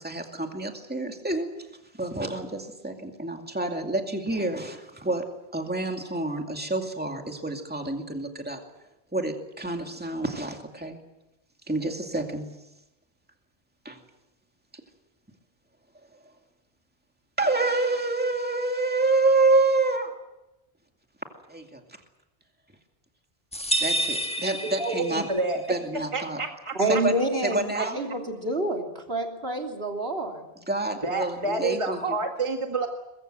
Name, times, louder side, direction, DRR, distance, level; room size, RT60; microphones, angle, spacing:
voice 1, 0.0-1.5 1.9-5.2 5.5-8.6 9.1-11.0 11.7-12.5 13.8-14.0 17.4-20.1 21.5-21.8 23.8-25.3 25.7-26.4 26.9-27.1 27.4-28.0 30.7-32.2, right 2 dB, 10° right, 3 dB, 2.4 m, -27 dB
sound 1, 23.5-25.5, right 1 dB, 5° left, 1.3 m, -28 dB
voice 2, 24.6-25.6 26.1-27.0 27.7-27.9 31.0-32.9, right 3 dB, 30° right, 3 dB, 1.8 m, -29 dB
voice 3, 26.7-30.4, right 1 dB, 70° right, 2 dB, 3.5 m, -28 dB
23.0 x 22.5 x 7.8 m, 0.94 s
omnidirectional pair, 1.1 m